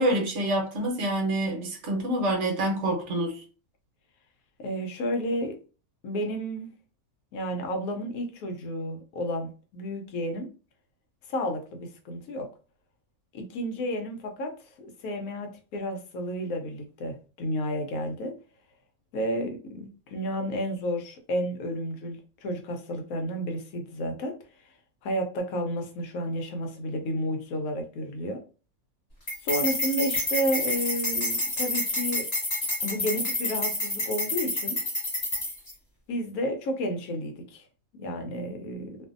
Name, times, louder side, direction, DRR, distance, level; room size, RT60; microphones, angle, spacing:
voice 1, 0.0-3.4, right 1 dB, 60° right, 1.0 m, -27 dB
voice 2, 4.6-5.6 6.0-6.7 7.3-10.5 11.3-12.5 13.3-14.5 14.8-18.4 19.1-24.3 25.0-28.4 29.4-32.3 32.8-34.8 36.1-37.6 38.0-39.0, equal, 75° left, 1.1 m, -31 dB
sound 1, 29.3-35.7, left 1 dB, 30° left, 1.1 m, -29 dB
2.5 x 2.5 x 2.5 m
omnidirectional pair, 1.5 m